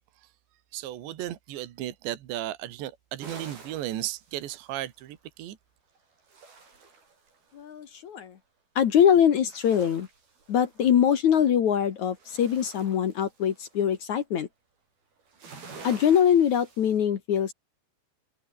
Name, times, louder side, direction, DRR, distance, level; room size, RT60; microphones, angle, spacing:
voice 1, 0.7-5.6, right 13 dB, 75° right, 4.0 m, -35 dB
sound 1, 3.2-5.2 6.0-7.7 9.3-11.2 11.7-14.1 15.2-17.0, right 4 dB, 55° right, 8.9 m, -49 dB
voice 2, 7.5-8.4 8.8-10.1 10.5-14.5 15.8-17.5, left 9 dB, 60° left, 2.1 m, -23 dB
omnidirectional pair, 5.3 m